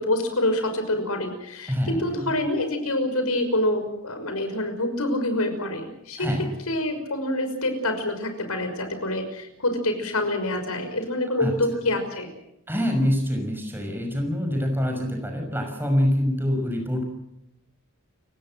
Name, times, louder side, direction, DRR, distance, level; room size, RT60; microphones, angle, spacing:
voice 1, 0.0-12.3, left 1 dB, 85° left, 7 dB, 6.0 m, -26 dB
voice 2, 1.7-2.3 6.2-6.5 11.4-11.6 12.7-17.0, equal, 10° right, 4 dB, 6.0 m, -25 dB
29.5 x 17.5 x 7.7 m, 0.83 s
head